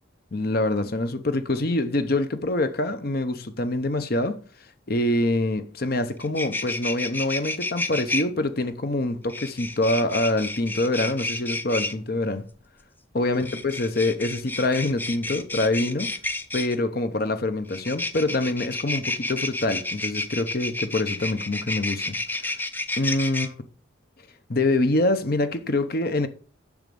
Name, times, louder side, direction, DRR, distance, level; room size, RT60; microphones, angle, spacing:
voice 1, 0.3-4.4 4.9-12.4 13.1-16.1 16.5-22.6 23.0-23.5 24.5-26.3, left 2 dB, 50° left, 0.8 m, -25 dB
File on plastic, 6.2-8.2 9.3-11.9 13.3-16.7 17.7-23.5, left 2 dB, 10° left, 0.5 m, -30 dB
7.2 x 6.2 x 6.9 m
head